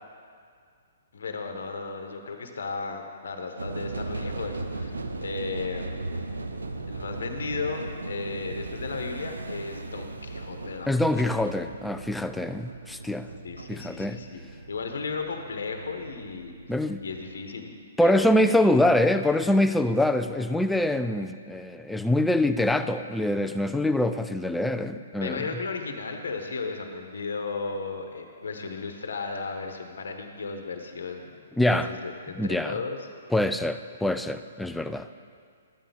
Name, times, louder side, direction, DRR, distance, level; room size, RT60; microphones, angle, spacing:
voice 1, 1.1-6.0 6.9-7.8 8.1-11.0 13.4-14.4 14.7-16.5 17.0-17.7 18.0-18.6 25.2-31.3 31.7-33.0, left 4 dB, 65° left, 4 dB, 1.1 m, -35 dB
sound 1, 3.6-17.4, right 2 dB, 80° right, 0.6 m, -37 dB
voice 2, 10.9-13.3 13.7-14.2 16.7-17.0 18.0-25.5 31.6-31.9 32.4-32.7 33.3-35.1, left 1 dB, 5° left, 9 dB, 0.3 m, -24 dB
12.5 x 9.0 x 3.5 m, 2.2 s
figure-of-eight pair, 125°, 0 cm